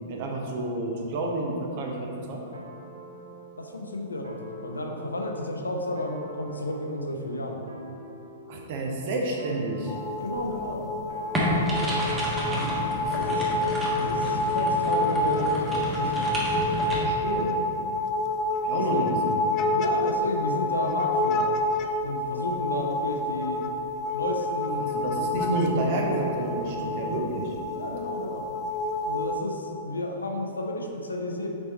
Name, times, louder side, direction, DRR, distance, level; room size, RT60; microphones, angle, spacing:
voice 1, 0.1-2.4 8.5-9.9 13.1-13.4 16.9-17.5 18.5-19.4 24.8-27.5, right 2 dB, 45° right, 0 dB, 0.9 m, -30 dB
sound 1, 2.5-8.7 9.4-15.6 16.2-17.7, right 3 dB, 70° right, 0.6 m, -46 dB
voice 2, 3.6-7.6 10.2-10.9 13.1-13.5 13.9-16.3 18.7-19.1 19.7-21.5 22.0-23.6 24.1-24.9 27.8-28.5 29.0-31.5, left 1 dB, 75° left, 2 dB, 0.7 m, -32 dB
sound 2, 9.9-29.4, left 2 dB, 30° left, 0.3 m, -28 dB
sound 3, 11.3-17.0, equal, 15° right, 1.2 m, -30 dB
5.2 x 4.7 x 4.1 m, 2.6 s
figure-of-eight pair, 105°, 0 cm